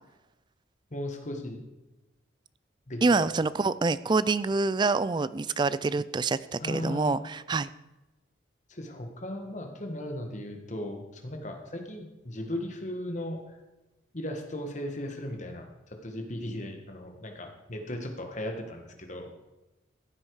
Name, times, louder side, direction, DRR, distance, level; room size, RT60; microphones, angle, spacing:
voice 1, 0.9-1.6 2.9-3.3 6.6-7.2 8.7-13.5 14.1-19.4, left 1 dB, 40° left, 4 dB, 1.6 m, -37 dB
voice 2, 3.0-7.7, right 3 dB, 25° right, 17 dB, 0.3 m, -26 dB
15.0 x 8.7 x 4.8 m, 1.1 s
head